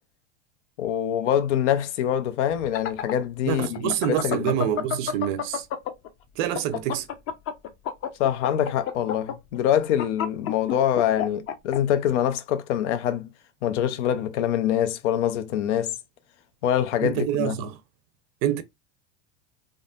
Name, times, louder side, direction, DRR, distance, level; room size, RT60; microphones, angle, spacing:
voice 1, 0.8-4.6 8.2-13.3 13.6-15.9 16.6-17.7, left 10 dB, 85° left, 0.6 m, -25 dB
sound 1, 2.5-6.1 6.4-11.8, left 9 dB, 40° left, 0.6 m, -29 dB
voice 2, 3.5-5.7 6.4-7.1 17.0-17.8 18.4-18.6, right 11 dB, 50° right, 0.6 m, -26 dB
3.6 x 2.0 x 2.4 m
supercardioid pair, 120°, 35 cm